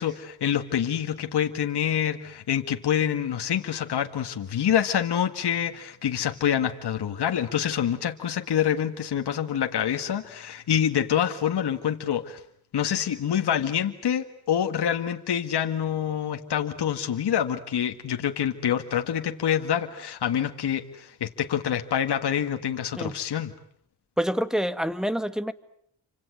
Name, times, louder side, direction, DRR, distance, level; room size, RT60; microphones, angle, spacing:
voice 1, 0.0-12.4 12.7-23.5, left 9 dB, 65° left, 6 dB, 1.9 m, -26 dB
voice 2, 24.2-25.5, equal, ahead, 13 dB, 1.5 m, -27 dB
29.5 x 25.5 x 7.8 m, 0.68 s
cardioid pair, 85°, 43 cm